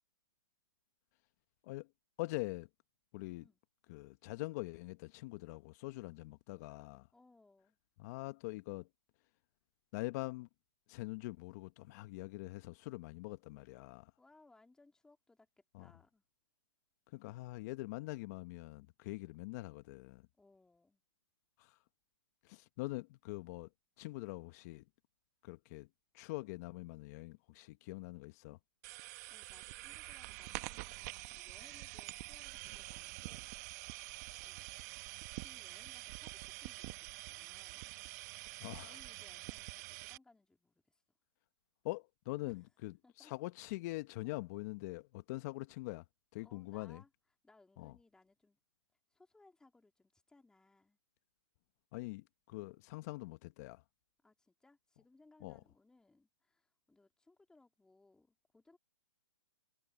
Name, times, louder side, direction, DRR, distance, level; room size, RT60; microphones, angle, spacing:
voice 1, 2.2-2.7 3.1-3.4 3.9-7.1 8.0-8.9 9.9-10.5 10.9-14.1 15.7-15.9 17.1-20.3 21.6-21.8 22.4-23.7 24.0-24.8 25.4-25.9 26.1-28.6 38.6-39.0 41.8-46.0 46.3-47.0 47.8-47.9 51.9-53.8 55.4-55.6, left 21 dB, 35° left, 1.2 m, -44 dB
voice 2, 7.1-7.8 14.2-16.2 20.4-21.0 29.3-33.6 34.4-34.8 35.2-38.0 38.8-41.0 42.4-42.6 43.0-43.3 46.4-47.1 47.4-48.6 49.1-51.0 52.6-52.9 54.2-58.8, left 2 dB, 5° left, 3.1 m, -66 dB
sound 1, 28.8-40.2, right 22 dB, 35° right, 1.3 m, -47 dB
hypercardioid pair, 140°, 15 cm